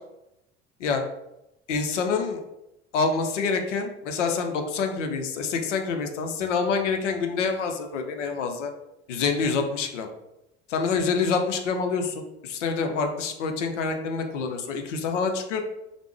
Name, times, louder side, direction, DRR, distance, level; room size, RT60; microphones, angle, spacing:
voice 1, 1.7-2.4 2.9-8.7 9.1-10.1 10.7-15.6, left 5 dB, 75° left, 5 dB, 0.5 m, -26 dB
3.3 x 2.0 x 3.1 m, 0.89 s
figure-of-eight pair, 65°, 37 cm